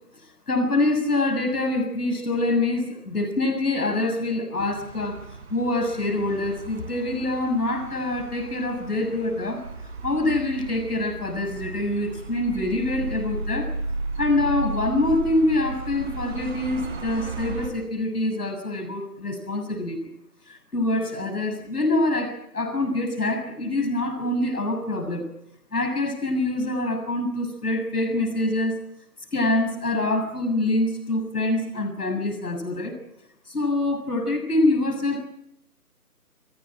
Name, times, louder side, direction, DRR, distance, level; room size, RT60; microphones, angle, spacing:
voice 1, 0.5-5.2 5.5-9.6 10.0-13.7 14.2-20.0 20.5-25.3 25.7-28.8 29.3-33.0 33.5-35.3, left 2 dB, 75° left, 7 dB, 6.9 m, -25 dB
sound 1, 4.6-17.7, right 3 dB, 45° right, 5.3 m, -35 dB
30.0 x 17.0 x 7.6 m, 0.79 s
figure-of-eight pair, 170°, 46 cm